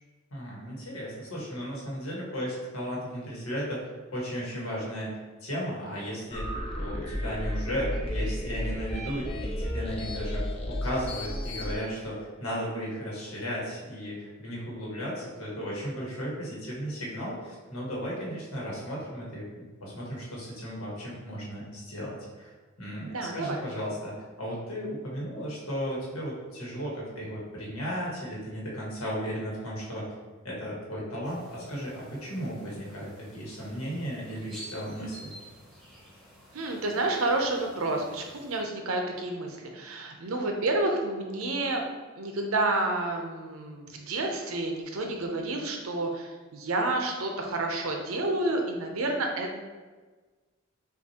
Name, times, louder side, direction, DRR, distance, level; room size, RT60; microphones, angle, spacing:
voice 1, 0.3-3.8 4.1-6.5 6.8-22.5 22.8-30.0 30.4-35.3, equal, 90° left, -5 dB, 1.4 m, -35 dB
sound 1, 6.3-11.8, left 1 dB, 30° left, 0.5 m, -33 dB
voice 2, 23.1-23.6 36.5-41.8 42.2-49.5, right 2 dB, 85° right, 2 dB, 0.7 m, -29 dB
sound 2, 31.2-38.6, equal, ahead, 1.0 m, -51 dB
5.9 x 2.5 x 2.9 m, 1.3 s
head